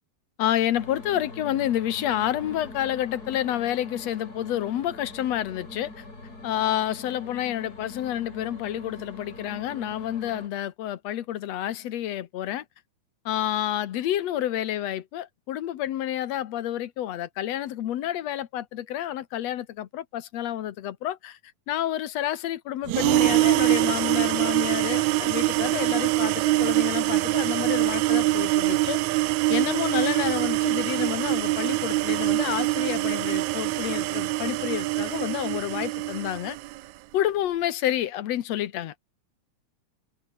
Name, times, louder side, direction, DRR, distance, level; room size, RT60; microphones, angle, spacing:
voice 1, 0.4-6.0 6.4-12.6 13.3-21.4 21.7-29.0 29.5-36.6 37.1-38.9, left 12 dB, 65° left, 2.2 m, -29 dB
sound 1, 0.7-10.5, left 2 dB, 30° left, 6.3 m, -43 dB
sound 2, 22.9-36.8, right 17 dB, 75° right, 1.9 m, -24 dB
omnidirectional pair, 3.4 m